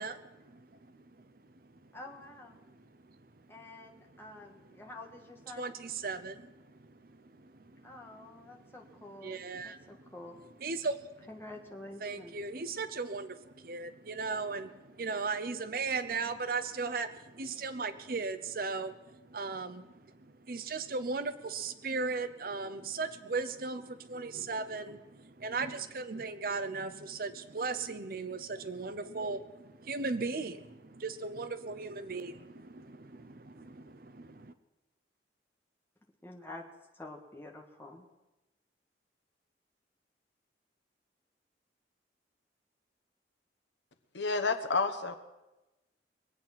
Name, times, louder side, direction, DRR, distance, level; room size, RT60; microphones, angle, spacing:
voice 1, 0.0-1.7 2.7-3.2 4.1-4.4 5.6-9.0 9.2-10.0 10.6-11.3 12.0-34.5, right 4 dB, 50° right, 10 dB, 0.7 m, -38 dB
voice 2, 1.9-2.5 3.5-5.7 7.8-9.4 9.6-10.3 11.3-12.3 36.2-36.6 36.9-38.0, left 2 dB, 15° left, 0 dB, 1.6 m, -48 dB
voice 3, 44.1-45.1, left 4 dB, 85° left, 8 dB, 1.1 m, -29 dB
21.5 x 8.6 x 5.9 m, 1.0 s
head